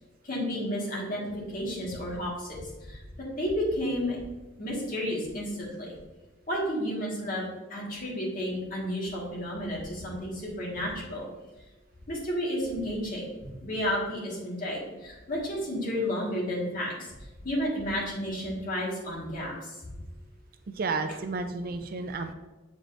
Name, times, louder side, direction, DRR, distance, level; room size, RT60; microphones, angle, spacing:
voice 1, 0.2-1.2 1.5-4.2 4.6-6.0 6.5-7.5 7.7-11.3 12.1-13.3 13.6-17.2 17.4-20.0, equal, 45° left, -4 dB, 1.7 m, -32 dB
voice 2, 20.7-22.3, right 3 dB, 45° right, 8 dB, 0.4 m, -32 dB
7.3 x 5.0 x 2.6 m, 1.1 s
head